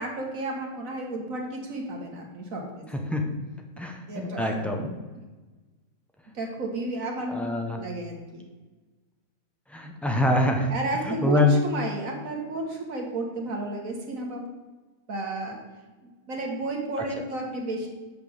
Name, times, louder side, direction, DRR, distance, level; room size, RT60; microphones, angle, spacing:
voice 1, 0.0-2.6 2.9-3.1 4.1-4.6 6.3-7.4 7.8-8.4 10.7-14.4 15.1-15.6 16.0-17.9, right 2 dB, 65° right, 1 dB, 2.0 m, -32 dB
voice 2, 2.9-3.3 3.8-4.9 7.3-7.8 9.7-10.7 11.0-11.6, left 2 dB, ahead, 2 dB, 0.8 m, -25 dB
6.1 x 5.8 x 6.9 m, 1.2 s
omnidirectional pair, 1.5 m